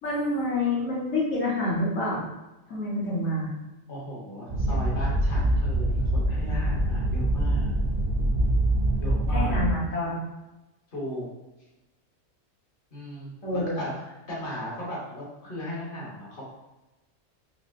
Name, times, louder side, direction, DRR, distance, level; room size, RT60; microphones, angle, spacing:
voice 1, 0.0-2.2 2.7-3.5 9.3-10.2 13.4-13.8, left 2 dB, 75° left, -7 dB, 1.6 m, -27 dB
voice 2, 3.9-7.7 9.0-9.6 10.9-11.2 12.9-16.5, equal, 45° left, -6 dB, 1.3 m, -36 dB
sound 1, 4.5-9.7, right 1 dB, 60° right, 0.5 m, -24 dB
5.2 x 2.1 x 2.6 m, 1.0 s
omnidirectional pair, 1.3 m